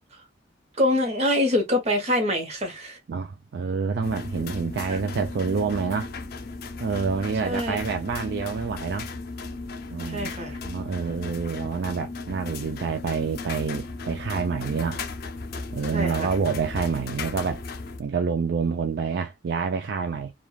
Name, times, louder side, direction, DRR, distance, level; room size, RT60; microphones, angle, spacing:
voice 1, 0.8-3.0 4.8-5.0 7.4-7.8 10.0-10.6 15.9-16.3, left 1 dB, 35° right, 1.0 m, -25 dB
voice 2, 3.1-6.1 6.8-9.1 9.9-10.3 10.6-15.0 15.7-17.6 18.0-20.3, right 5 dB, 60° right, 0.4 m, -27 dB
sound 1, 4.0-18.0, left 3 dB, 55° left, 0.5 m, -36 dB
3.2 x 2.4 x 2.3 m
head